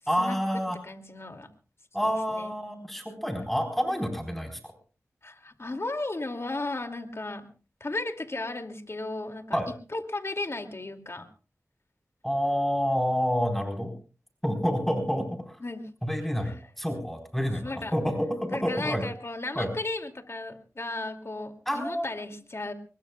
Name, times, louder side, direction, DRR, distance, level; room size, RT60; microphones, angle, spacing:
voice 1, 0.1-0.8 1.9-4.6 9.5-9.7 12.2-13.9 14.4-15.6 16.0-19.0 19.5-19.7 21.7-22.1, equal, 5° left, 4 dB, 4.3 m, -28 dB
voice 2, 0.7-1.5 2.0-2.5 5.2-7.5 7.8-9.6 9.9-11.3 15.6-15.9 16.5-16.6 17.6-17.9 18.5-22.7, left 2 dB, 50° left, 6 dB, 2.5 m, -35 dB
24.5 x 21.0 x 2.3 m, 0.36 s
cardioid pair, 40°, 6 cm